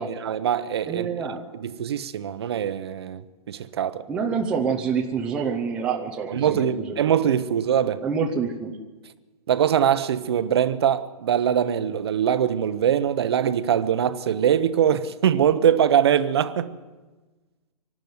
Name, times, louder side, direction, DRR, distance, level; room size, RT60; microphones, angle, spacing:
voice 1, 0.0-1.1 1.5-3.2 3.5-4.0 6.3-8.0 9.5-16.8, right 9 dB, 40° right, 0.9 m, -22 dB
voice 2, 0.9-1.4 4.1-7.0 8.0-8.8, right 6 dB, 5° right, 0.6 m, -27 dB
24.5 x 12.0 x 9.5 m
hypercardioid pair, 170°, 20 cm